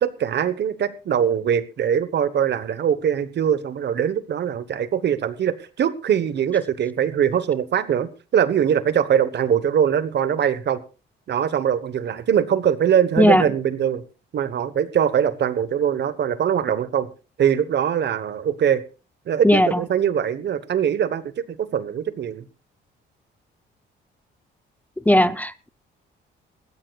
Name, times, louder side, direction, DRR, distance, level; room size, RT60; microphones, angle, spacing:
voice 1, 0.0-10.8 11.3-14.0 14.3-17.1 17.4-18.8 19.3-22.4, right 8 dB, 60° right, 1.3 m, -22 dB
voice 2, 19.4-19.8 25.1-25.7, left 1 dB, 10° left, 0.7 m, -17 dB
20.5 x 15.5 x 2.4 m
cardioid pair, 90°, 20 cm